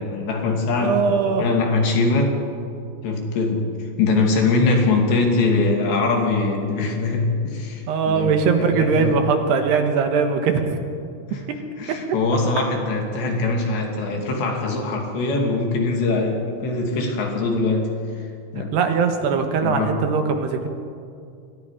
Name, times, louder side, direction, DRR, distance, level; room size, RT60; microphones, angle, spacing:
voice 1, 0.0-2.4 3.0-3.7 4.0-8.3 8.6-9.2 11.3-11.4 11.8-17.9 18.5-18.8 19.6-19.9, left 3 dB, 70° left, 1 dB, 4.9 m, -22 dB
voice 2, 0.8-1.5 7.9-10.8 11.3-11.4 11.9-12.1 14.1-14.2 18.7-20.7, right 5 dB, 70° right, 5 dB, 3.4 m, -21 dB
29.0 x 23.0 x 5.0 m, 2.4 s
omnidirectional pair, 5.2 m